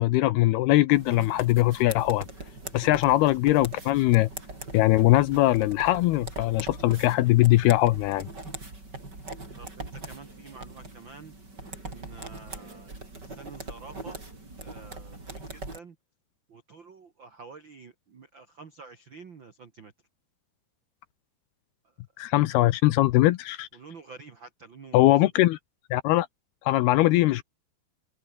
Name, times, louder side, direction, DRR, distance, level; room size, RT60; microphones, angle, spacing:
voice 1, 0.0-2.3 2.7-4.3 4.7-8.3 22.2-23.7 24.9-25.6 25.9-26.3 26.7-27.4, left 17 dB, 75° left, 2.5 m, -21 dB
sound 1, 0.9-15.8, right 2 dB, 20° right, 6.6 m, -41 dB
voice 2, 9.6-11.3 11.9-14.2 14.6-15.9 16.5-19.9 23.7-25.1, right 4 dB, 70° right, 1.1 m, -48 dB
omnidirectional pair, 5.1 m